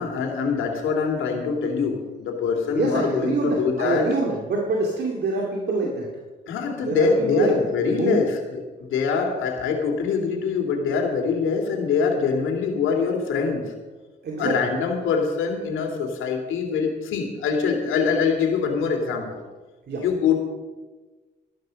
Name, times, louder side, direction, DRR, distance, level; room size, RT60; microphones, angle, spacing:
voice 1, 0.0-4.1 6.5-13.7 14.4-19.4 20.0-20.4, left 5 dB, 80° left, 2 dB, 2.8 m, -24 dB
voice 2, 2.5-6.1 6.8-7.7 8.0-8.2 14.2-14.5 19.9-20.0, right 3 dB, 55° right, 0 dB, 2.2 m, -25 dB
13.0 x 12.5 x 5.3 m, 1.3 s
cardioid pair, 90°, 20 cm